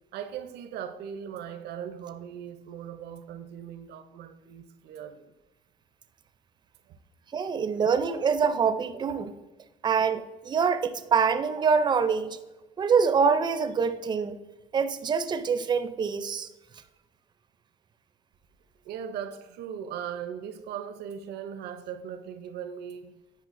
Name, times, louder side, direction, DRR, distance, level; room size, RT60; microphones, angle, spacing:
voice 1, 0.1-5.3 6.9-7.0 18.8-23.1, right 8 dB, 75° right, 0.6 m, -39 dB
voice 2, 7.3-9.3 9.8-12.4 12.8-14.4 14.7-16.5, right 6 dB, 25° right, 0.4 m, -25 dB
9.3 x 5.2 x 2.5 m
cardioid pair, 110°, 17 cm